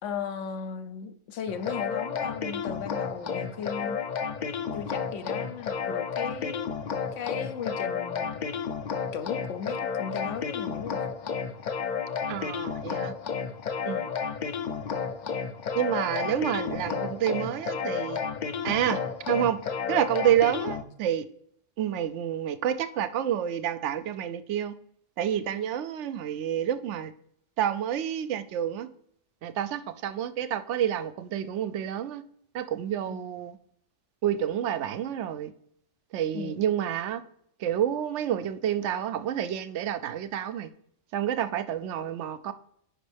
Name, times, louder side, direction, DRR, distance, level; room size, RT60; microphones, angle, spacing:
voice 1, 0.0-4.0 4.7-6.7 7.1-8.6 9.1-11.0 33.0-33.2 36.3-36.6, left 7 dB, 75° left, 1.0 m, -36 dB
sound 1, 1.5-20.8, left 6 dB, 50° left, 0.6 m, -32 dB
voice 2, 12.3-13.1 13.8-14.2 15.7-18.2 18.6-19.0 19.3-19.6 19.9-21.3 21.8-24.7 25.2-27.1 27.6-28.9 29.4-32.2 32.5-33.6 34.2-35.5 36.1-37.2 37.6-40.7 41.1-42.5, right 10 dB, 75° right, 0.9 m, -29 dB
10.0 x 5.3 x 3.4 m
omnidirectional pair, 1.3 m